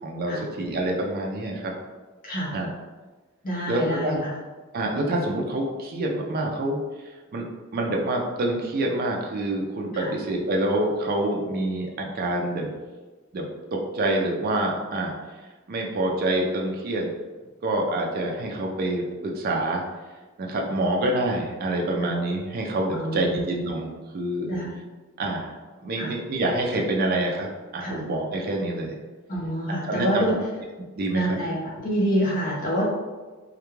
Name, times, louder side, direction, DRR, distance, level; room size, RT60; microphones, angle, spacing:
voice 1, 0.0-1.7 2.5-2.7 3.7-4.2 4.7-7.5 7.7-12.7 13.3-13.4 13.7-15.1 15.7-17.1 17.6-19.8 20.4-24.6 25.2-25.6 25.8-27.5 27.7-28.9 29.7-30.4 31.0-31.4, right 1 dB, 45° right, 0 dB, 0.4 m, -26 dB
voice 2, 2.2-2.6 3.4-4.3 9.9-10.1 22.0-22.1 22.9-23.4 24.5-24.7 26.0-26.1 27.8-28.0 29.3-30.4 31.1-31.6 31.8-32.8, equal, 40° left, -4 dB, 0.7 m, -27 dB
2.3 x 2.1 x 3.0 m, 1.3 s
head